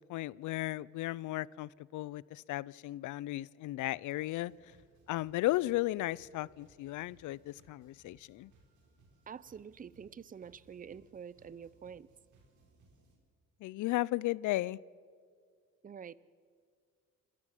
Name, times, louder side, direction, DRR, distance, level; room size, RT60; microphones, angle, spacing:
voice 1, 0.0-4.5 5.1-8.5 13.6-14.8, left 17 dB, 80° left, 24 dB, 0.5 m, -35 dB
sound 1, 4.4-13.2, right 3 dB, 75° right, 4.9 m, -66 dB
voice 2, 9.3-12.1 15.8-16.1, right 7 dB, 30° right, 20 dB, 0.6 m, -47 dB
26.5 x 13.5 x 7.6 m, 2.1 s
cardioid pair, 90°, 30 cm